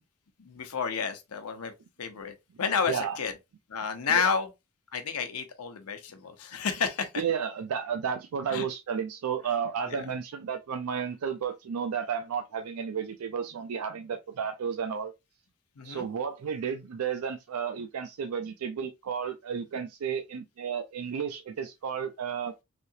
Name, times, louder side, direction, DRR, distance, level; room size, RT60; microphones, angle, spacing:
voice 1, 0.4-1.7 2.0-3.3 3.7-4.5 4.9-7.2 8.5-8.7 9.9-10.0 15.8-16.1, left 6 dB, 80° left, 0.7 m, -31 dB
voice 2, 2.9-3.2 4.1-4.3 7.2-15.1 15.8-22.5, right 7 dB, 80° right, 0.4 m, -32 dB
3.3 x 2.8 x 2.6 m
head